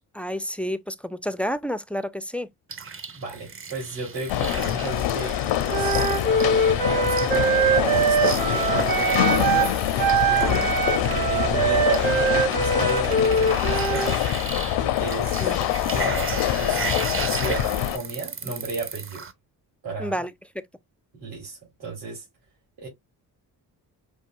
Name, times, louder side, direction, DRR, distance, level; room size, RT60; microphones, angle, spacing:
voice 1, 0.1-2.5 10.4-10.8 15.4-15.7 20.0-20.3, equal, 5° left, 0.3 m, -30 dB
sound 1, 2.7-19.3, right 5 dB, 30° right, 0.6 m, -36 dB
voice 2, 3.1-9.6 10.2-10.6 11.0-14.2 14.8-15.5 15.9-16.8 17.3-19.2 19.8-20.1 21.2-22.2 22.8-22.9, right 3 dB, 75° right, 2.9 m, -34 dB
sound 2, 4.3-18.0, left 12 dB, 75° left, 0.6 m, -25 dB
Wind instrument woodwind instrument, 5.7-9.7 10.0-14.2, right 4 dB, 50° right, 1.6 m, -23 dB
5.4 x 2.7 x 2.3 m
supercardioid pair, 50°, 44 cm